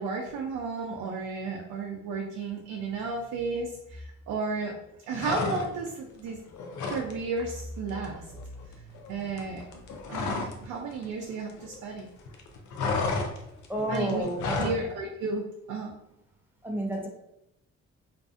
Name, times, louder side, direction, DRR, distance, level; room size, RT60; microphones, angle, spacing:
voice 1, 0.0-4.7 5.1-6.4 6.9-8.3 8.8-9.6 10.1-12.1 13.9-14.3 14.6-15.9, right 4 dB, 90° right, 0 dB, 0.5 m, -33 dB
sound 1, 5.1-6.0 6.3-7.1 7.4-7.6 7.9-10.7 10.9-12.0 12.3-14.8, left 4 dB, 70° left, 0.5 m, -32 dB
voice 2, 13.7-14.7 16.6-17.1, right 1 dB, 5° right, 0 dB, 0.5 m, -30 dB
2.6 x 2.4 x 2.4 m, 0.82 s
cardioid pair, 90°, 30 cm